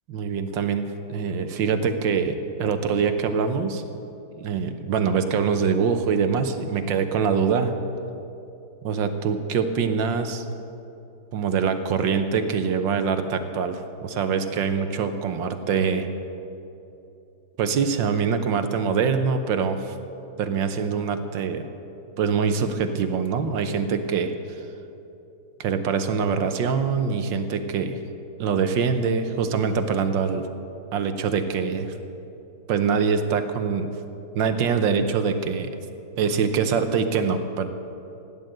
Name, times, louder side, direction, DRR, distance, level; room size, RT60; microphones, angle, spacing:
voice 1, 0.1-3.8 4.3-7.7 8.8-10.4 11.3-16.1 17.6-20.0 20.4-21.7 22.2-24.3 25.6-28.0 28.4-30.5 30.9-31.9 32.7-33.9 34.3-35.7 36.2-37.7, right 6 dB, 75° right, 8 dB, 1.6 m, -24 dB
16.5 x 10.0 x 7.8 m, 2.8 s
omnidirectional pair, 2.1 m